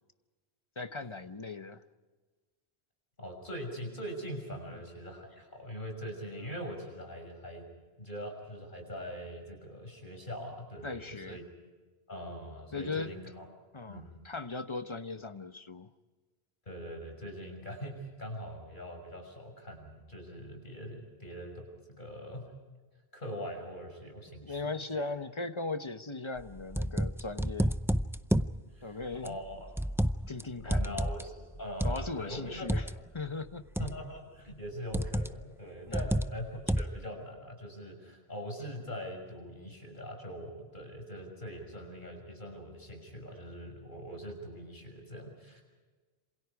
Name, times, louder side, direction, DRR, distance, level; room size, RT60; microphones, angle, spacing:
voice 1, 0.8-1.8 10.8-11.4 12.7-13.1 13.7-15.9 24.4-27.7 28.8-29.3 30.3-30.9 31.8-32.8 33.1-33.6 35.9-36.0, left 3 dB, 30° left, 9 dB, 1.1 m, -38 dB
voice 2, 3.2-7.6 8.0-11.4 12.1-13.5 13.9-14.2 16.7-21.7 22.0-22.4 23.1-25.1 28.7-29.7 30.6-32.9 33.8-45.6, equal, 50° left, 3 dB, 6.4 m, -42 dB
sound 1, 26.4-28.6 29.3-30.4 30.7-32.9 33.8-34.1 34.9-35.4 35.9-37.0, right 1 dB, 5° right, 0.3 m, -30 dB
27.5 x 27.0 x 4.8 m, 1.3 s
omnidirectional pair, 1.1 m